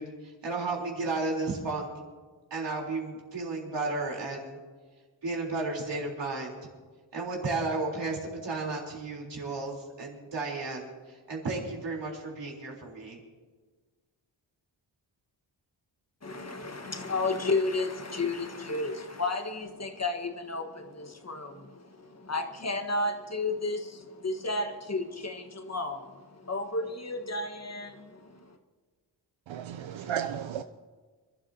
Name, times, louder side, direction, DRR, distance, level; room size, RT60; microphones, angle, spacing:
voice 1, 0.0-1.9 2.5-4.6 5.2-6.6 7.1-13.2, right 3 dB, 65° right, -1 dB, 3.8 m, -33 dB
voice 2, 16.2-28.6, left 2 dB, 35° left, 5 dB, 1.4 m, -33 dB
voice 3, 29.5-30.6, right 9 dB, 80° right, 9 dB, 0.6 m, -34 dB
27.0 x 12.5 x 2.8 m, 1.4 s
wide cardioid pair, 110°, 46 cm